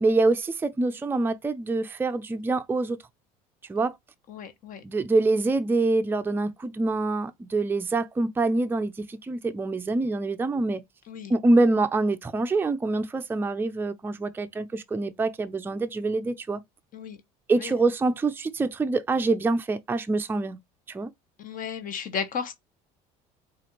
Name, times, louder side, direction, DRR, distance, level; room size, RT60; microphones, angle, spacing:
voice 1, 0.0-3.0 3.7-4.0 4.8-10.8 11.3-16.6 17.5-20.6 20.9-21.1, right 3 dB, 10° right, 0.4 m, -25 dB
voice 2, 4.3-4.8 11.1-11.3 16.9-17.2 17.6-17.7 21.4-22.5, left 6 dB, 50° left, 0.8 m, -34 dB
4.1 x 2.5 x 2.9 m
supercardioid pair, 85°, 18 cm